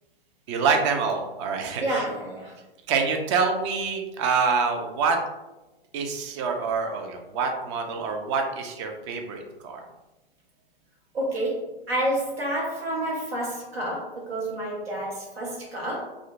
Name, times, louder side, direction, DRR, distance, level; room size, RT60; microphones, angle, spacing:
voice 1, 0.5-2.1 2.9-5.2 5.9-9.8, right 5 dB, 30° right, 4 dB, 0.4 m, -26 dB
voice 2, 1.8-2.5 11.1-11.6 11.9-16.1, right 1 dB, 80° right, -5 dB, 1.1 m, -29 dB
3.6 x 2.1 x 2.4 m, 1.0 s
hypercardioid pair, 115°, 30 cm